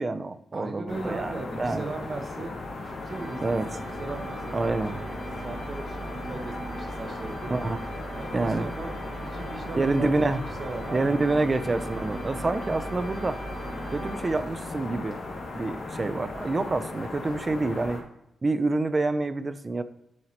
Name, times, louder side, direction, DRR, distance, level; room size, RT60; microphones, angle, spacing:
voice 1, 0.0-1.8 3.4-3.7 4.5-5.0 7.5-7.8 8.3-8.7 9.7-10.4 10.9-13.4 13.9-15.2 15.5-18.0 18.4-19.8, right 3 dB, 25° right, 12 dB, 0.4 m, -27 dB
voice 2, 0.5-2.5 2.8-5.1 5.4-7.6 8.1-10.1 10.4-11.2, right 3 dB, 45° right, 5 dB, 1.0 m, -38 dB
sound 1, 0.9-18.0, left 3 dB, 70° left, 2.5 m, -37 dB
sound 2, 3.0-15.0, right 2 dB, 60° right, 2.6 m, -39 dB
10.5 x 4.5 x 2.9 m, 0.83 s
wide cardioid pair, 150°, 0 cm